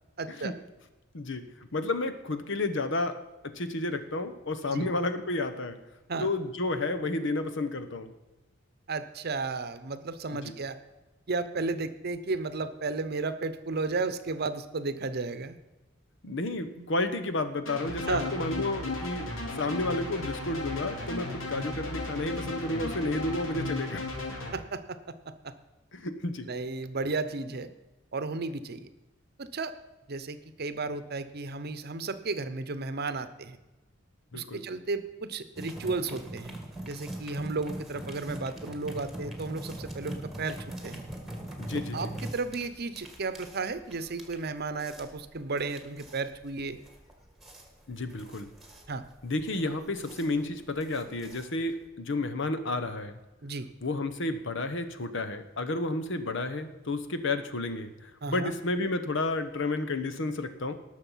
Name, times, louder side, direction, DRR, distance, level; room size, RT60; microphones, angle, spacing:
voice 1, 0.2-0.5 4.7-4.9 6.1-6.3 8.9-10.8 11.3-15.6 16.8-16.9 18.1-18.3 24.5-25.1 25.4-25.5 26.5-27.7 28.1-28.9 29.4-29.7 30.1-33.6 34.3-36.6 36.8-41.1 41.9-46.8 48.9-49.0 53.4-53.7 58.2-58.5, right 3 dB, 55° right, 12 dB, 0.8 m, -33 dB
voice 2, 1.1-1.4 1.7-5.8 6.2-8.1 10.3-10.5 16.2-19.3 19.5-24.1 25.9-26.5 34.3-34.6 41.6-42.1 47.9-48.5 49.2-53.2 53.8-60.7, left 2 dB, 65° left, 10 dB, 1.0 m, -31 dB
sound 1, 17.7-24.5, left 2 dB, 90° left, 2.8 m, -35 dB
sound 2, 35.6-51.9, right 1 dB, ahead, 1.9 m, -42 dB
18.5 x 6.5 x 5.7 m, 1.1 s
head